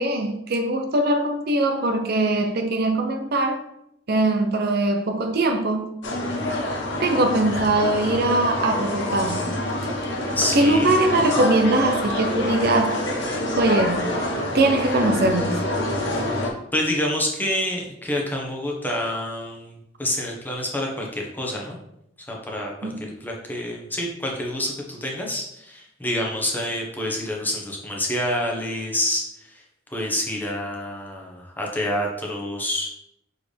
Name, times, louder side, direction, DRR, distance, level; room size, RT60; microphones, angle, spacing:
voice 1, 0.0-3.6 4.1-5.9 7.0-9.5 10.5-13.1 13.5-14.1 14.5-15.6 22.8-23.0, right 2 dB, 55° right, 0.6 m, -21 dB
sound 1, 6.0-16.5, left 1 dB, 65° left, 1.3 m, -26 dB
voice 2, 10.4-10.9 16.7-21.8 22.3-29.6 29.9-32.9, left 1 dB, 10° left, 1.2 m, -27 dB
6.8 x 4.2 x 3.4 m
head